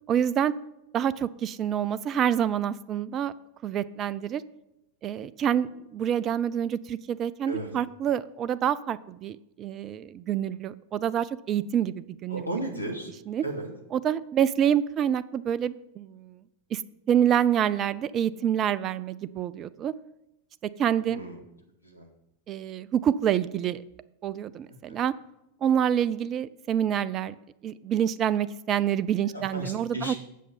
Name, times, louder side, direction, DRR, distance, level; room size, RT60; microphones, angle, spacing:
voice 1, 0.1-0.5 0.9-3.3 3.6-4.4 5.0-12.4 13.3-13.4 13.9-16.4 16.7-16.8 17.1-19.9 20.8-21.2 22.5-23.8 24.2-25.1 25.6-27.3 27.6-30.1, right 9 dB, 30° right, 16 dB, 0.4 m, -27 dB
voice 2, 12.3-13.1 13.4-13.7 21.0-21.4 21.8-22.1 24.9-25.0 29.3-30.2, right 1 dB, 85° left, 3 dB, 2.0 m, -34 dB
8.3 x 6.5 x 7.3 m, 0.89 s
figure-of-eight pair, 90°, 0 cm